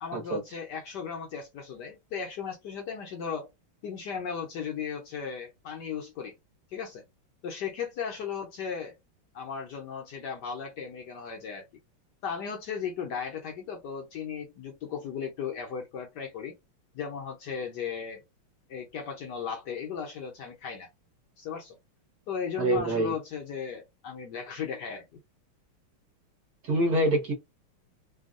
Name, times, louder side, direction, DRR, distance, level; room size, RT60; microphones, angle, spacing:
voice 1, 0.0-3.5 3.8-6.3 6.7-7.0 7.4-9.0 9.3-11.7 12.2-16.5 16.9-18.2 18.7-20.9 21.4-21.8 22.3-25.0, left 6 dB, 65° left, 1.2 m, -36 dB
voice 2, 22.6-23.1 26.6-27.3, right 1 dB, 55° right, 1.4 m, -25 dB
3.4 x 2.3 x 2.4 m
omnidirectional pair, 2.3 m